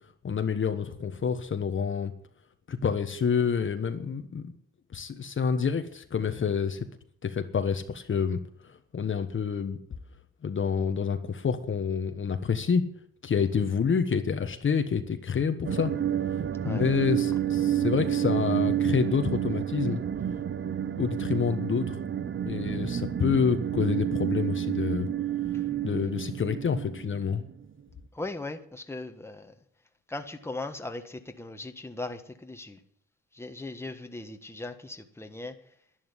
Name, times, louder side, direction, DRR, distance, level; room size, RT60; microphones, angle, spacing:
voice 1, 0.2-2.1 2.7-4.5 4.9-6.9 7.2-9.8 10.4-12.8 13.2-15.9 16.6-20.0 21.0-22.0 22.4-25.1 25.8-27.4, left 6 dB, 40° left, 8 dB, 1.3 m, -28 dB
sound 1, 15.6-27.6, right 10 dB, 40° right, 0.8 m, -29 dB
voice 2, 28.1-29.5 30.1-32.8 33.3-35.5, left 2 dB, 10° left, 6 dB, 1.5 m, -38 dB
11.0 x 11.0 x 8.1 m, 0.67 s
cardioid pair, 90°, 30 cm